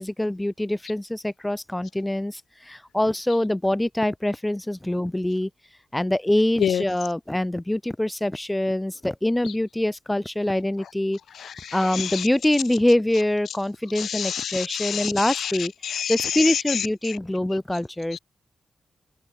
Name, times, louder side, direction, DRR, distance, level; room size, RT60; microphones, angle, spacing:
voice 1, 0.0-2.4 2.7-5.5 5.9-11.2 11.7-15.7 16.1-18.2, left 1 dB, 10° left, 0.7 m, -24 dB
voice 2, 11.4-12.3 14.0-17.2, left 8 dB, 85° left, 0.5 m, -28 dB
open air
cardioid pair, 90°, 0 cm